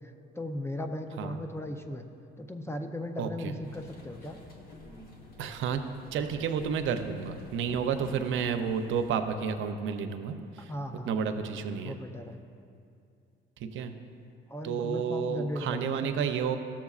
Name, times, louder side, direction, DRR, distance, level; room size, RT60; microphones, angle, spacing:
voice 1, 0.3-2.0 2.4-4.4 8.0-8.1 10.7-11.2 11.8-12.4 14.5-16.3, left 1 dB, 15° left, 6 dB, 0.5 m, -37 dB
voice 2, 3.2-3.5 5.4-5.8 6.1-10.4 11.1-12.0 13.7-13.9 14.6-16.6, right 6 dB, 80° right, 7 dB, 0.5 m, -31 dB
sound 1, 3.6-9.1, left 2 dB, 50° left, 1.2 m, -49 dB
13.0 x 7.2 x 2.4 m, 2.4 s
cardioid pair, 90°, 20 cm